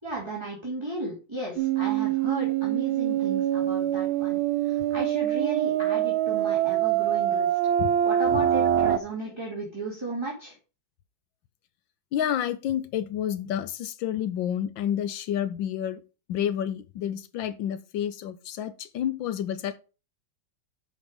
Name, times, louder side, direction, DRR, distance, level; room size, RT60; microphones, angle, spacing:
voice 1, 0.0-7.6 8.0-10.6, right 2 dB, 15° right, 2.3 m, -35 dB
sound 1, 1.6-9.0, right 11 dB, 85° right, 1.6 m, -24 dB
voice 2, 12.1-16.0 16.3-19.8, left 10 dB, 80° left, 1.5 m, -29 dB
8.2 x 5.6 x 5.1 m
omnidirectional pair, 2.1 m